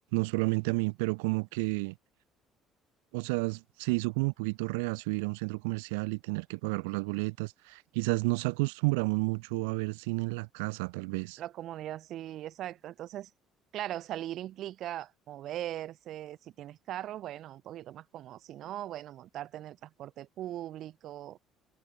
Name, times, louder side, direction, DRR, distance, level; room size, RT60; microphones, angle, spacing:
voice 1, 0.1-1.9 3.1-11.4, right 29 dB, 85° right, 2.6 m, -31 dB
voice 2, 11.4-13.3 13.7-21.4, right 13 dB, 65° right, 3.2 m, -40 dB
supercardioid pair, 70°, 0 cm